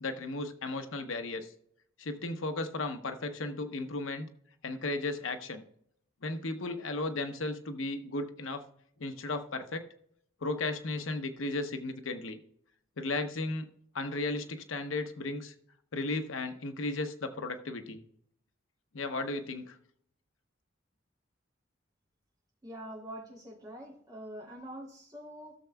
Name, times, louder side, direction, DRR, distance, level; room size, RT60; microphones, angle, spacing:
voice 1, 0.0-1.5 2.0-4.3 4.6-5.6 6.2-8.6 9.0-9.8 10.4-12.4 13.0-13.7 13.9-15.5 15.9-18.0 18.9-19.8, left 2 dB, 80° left, 7 dB, 0.8 m, -35 dB
voice 2, 22.6-25.5, right 1 dB, 20° right, -4 dB, 2.8 m, -45 dB
16.0 x 6.9 x 2.2 m, 0.68 s
head